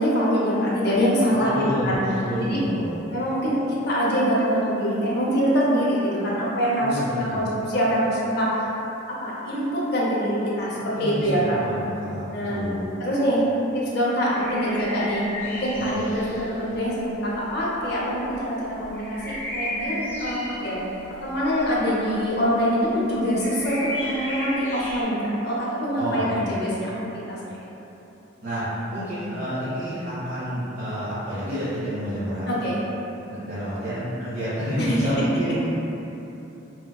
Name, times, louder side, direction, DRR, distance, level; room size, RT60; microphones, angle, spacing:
voice 1, 0.0-2.0 2.4-8.7 9.1-11.6 12.3-12.6 13.0-13.4 13.7-20.8 21.2-27.5 32.5-32.8 34.8-35.3, equal, 55° left, -6 dB, 0.7 m, -24 dB
voice 2, 1.5-2.9 6.8-7.4 10.9-12.8 15.7-16.0 26.0-26.5 28.4-28.6 28.9-32.6 33.3-35.5, equal, 50° right, -16 dB, 1.1 m, -29 dB
sound 1, 14.4-25.0, left 1 dB, 10° left, 0.5 m, -36 dB
4.4 x 2.1 x 2.2 m, 3.0 s
head